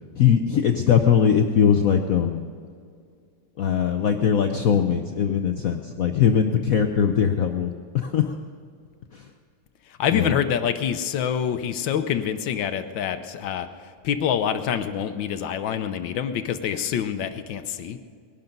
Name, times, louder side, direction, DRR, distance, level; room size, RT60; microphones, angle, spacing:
voice 1, 0.2-2.5 3.6-8.4 9.1-9.3 10.1-10.3, left 8 dB, 90° left, 6 dB, 0.7 m, -21 dB
voice 2, 9.9-18.0, left 8 dB, 65° left, 10 dB, 1.4 m, -26 dB
20.5 x 11.5 x 5.3 m, 2.2 s
omnidirectional pair, 2.4 m